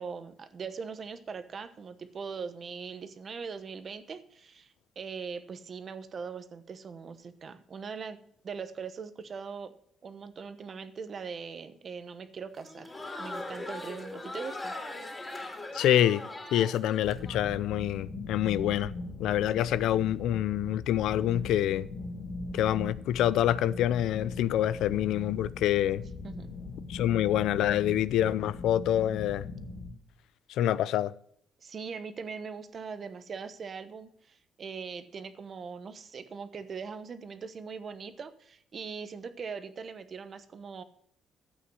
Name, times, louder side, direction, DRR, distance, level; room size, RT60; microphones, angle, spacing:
voice 1, 0.0-8.2 8.4-9.7 10.0-12.9 13.2-14.7 26.2-26.6 31.6-40.8, right 5 dB, 35° right, 1.0 m, -41 dB
Crowd, 12.6-17.4, left 2 dB, 15° left, 3.4 m, -40 dB
voice 2, 15.7-16.2 16.5-18.9 19.2-21.9 22.5-26.0 26.9-29.5 30.6-31.1, left 12 dB, 85° left, 0.5 m, -26 dB
sound 1, 17.0-29.9, left 3 dB, 45° left, 2.1 m, -40 dB
12.5 x 8.6 x 6.2 m
cardioid pair, 170°, 0 cm